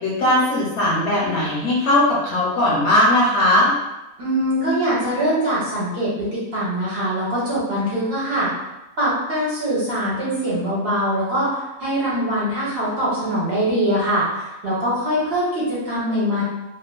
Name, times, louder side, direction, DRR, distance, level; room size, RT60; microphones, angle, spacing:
voice 1, 0.0-3.7, left 1 dB, 65° left, -5 dB, 0.8 m, -18 dB
voice 2, 4.2-8.5 9.0-16.4, equal, 55° right, -7 dB, 0.7 m, -23 dB
2.4 x 2.3 x 2.2 m, 0.97 s
omnidirectional pair, 1.5 m